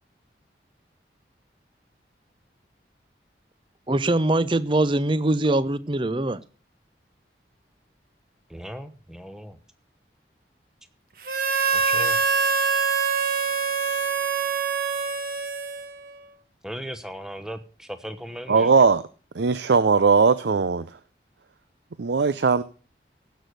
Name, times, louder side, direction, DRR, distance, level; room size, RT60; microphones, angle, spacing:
voice 1, 3.9-6.4, right 2 dB, 30° right, 0.6 m, -22 dB
voice 2, 8.5-9.6 11.7-12.2 16.6-18.7, equal, 5° right, 1.0 m, -37 dB
Harmonica, 11.2-16.1, right 5 dB, 55° right, 1.3 m, -24 dB
voice 3, 18.5-19.0 19.3-20.9 22.0-22.6, right 5 dB, 80° right, 0.6 m, -19 dB
16.0 x 6.3 x 6.7 m
head